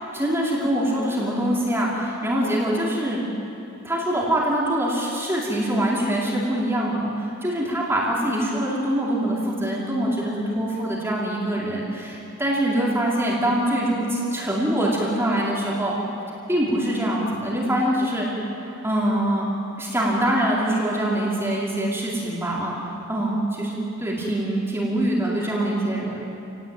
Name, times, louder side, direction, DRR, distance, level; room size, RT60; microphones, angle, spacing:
voice 1, 0.1-3.2 3.8-16.0 16.5-18.3 18.6-19.5 19.8-26.2, right 1 dB, 10° right, -5 dB, 4.6 m, -24 dB
29.0 x 19.0 x 9.3 m, 2.8 s
head